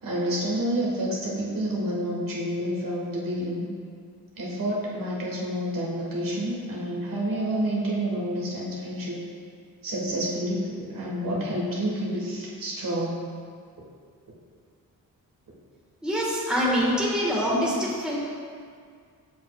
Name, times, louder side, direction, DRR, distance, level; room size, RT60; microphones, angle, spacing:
voice 1, 0.0-3.7 4.4-9.2 9.8-13.2, equal, 65° right, -4 dB, 1.4 m, -29 dB
voice 2, 16.0-18.2, equal, ahead, -6 dB, 1.4 m, -25 dB
7.0 x 6.2 x 2.3 m, 2.1 s
cardioid pair, 95°, 36 cm